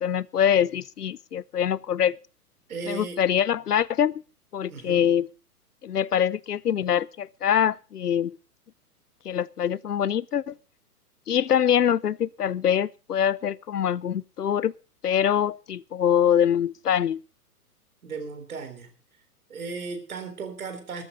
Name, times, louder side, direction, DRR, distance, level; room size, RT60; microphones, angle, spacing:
voice 1, 0.0-2.2 2.9-4.2 4.5-5.3 5.8-8.4 9.2-10.5 11.3-14.7 15.0-17.2, left 9 dB, 75° left, 0.7 m, -24 dB
voice 2, 2.7-3.2 4.7-5.1 18.0-18.9 19.5-21.0, right 4 dB, 65° right, 4.0 m, -36 dB
13.5 x 13.0 x 5.2 m
figure-of-eight pair, 120°, 47 cm